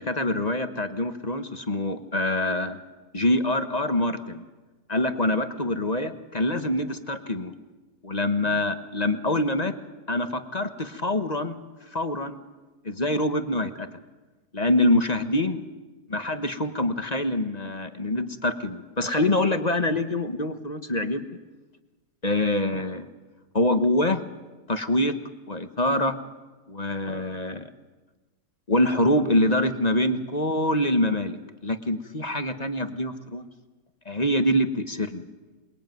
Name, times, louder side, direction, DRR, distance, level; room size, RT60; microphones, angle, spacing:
voice 1, 0.0-2.8 3.1-4.4 4.9-7.5 8.0-9.8 10.1-11.6 11.9-12.4 12.8-13.9 14.5-15.6 16.1-21.2 22.2-23.1 23.5-24.2 24.7-25.1 25.5-26.2 26.7-27.7 28.7-31.4 31.6-33.5 34.0-35.3, left 1 dB, 25° left, 9 dB, 1.3 m, -25 dB
28.0 x 21.5 x 9.3 m, 1.2 s
omnidirectional pair, 1.8 m